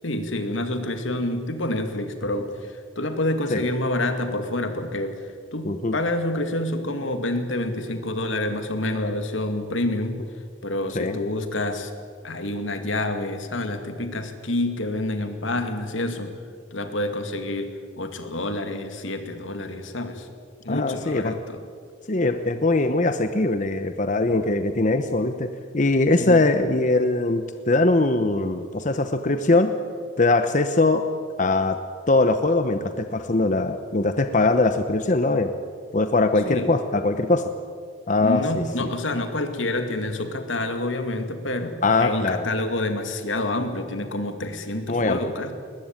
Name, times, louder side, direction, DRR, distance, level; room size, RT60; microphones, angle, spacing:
voice 1, 0.0-5.2 5.5-10.3 10.6-11.9 12.2-16.3 16.7-20.3 20.6-21.6 26.1-26.4 36.5-36.7 38.2-45.5, left 1 dB, 80° left, 7 dB, 2.4 m, -28 dB
voice 2, 20.7-21.4 22.1-29.7 30.2-31.0 31.4-31.8 32.1-35.5 35.9-37.5 38.1-38.9 41.8-42.5 44.9-45.2, left 2 dB, 40° left, 8 dB, 0.9 m, -21 dB
21.0 x 20.0 x 9.0 m, 2.1 s
head